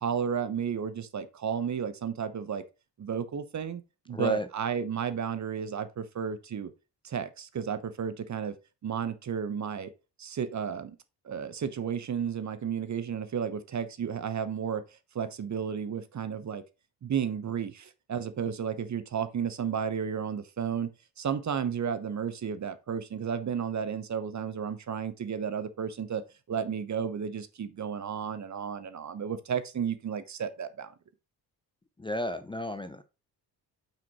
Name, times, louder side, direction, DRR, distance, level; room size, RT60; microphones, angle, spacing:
voice 1, 0.0-2.6 3.0-6.7 7.0-8.5 8.8-9.9 10.2-11.0 11.2-14.8 15.1-16.6 17.0-20.9 21.2-26.2 26.5-30.9, right 7 dB, 35° right, 1.0 m, -33 dB
voice 2, 4.1-4.5 32.0-33.0, equal, 10° left, 0.7 m, -32 dB
8.5 x 6.0 x 3.0 m
figure-of-eight pair, 40°, 50 cm